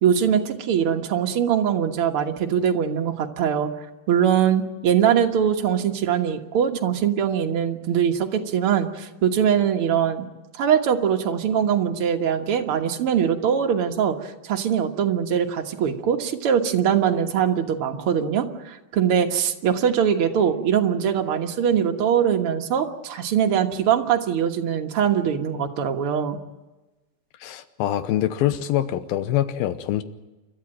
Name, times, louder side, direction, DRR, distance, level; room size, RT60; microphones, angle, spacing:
voice 1, 0.0-3.7 4.1-10.3 10.5-26.4, right 8 dB, 55° right, 3 dB, 1.7 m, -22 dB
voice 2, 27.4-30.0, left 12 dB, 90° left, 12 dB, 2.8 m, -24 dB
29.5 x 13.0 x 9.0 m, 1.1 s
omnidirectional pair, 4.2 m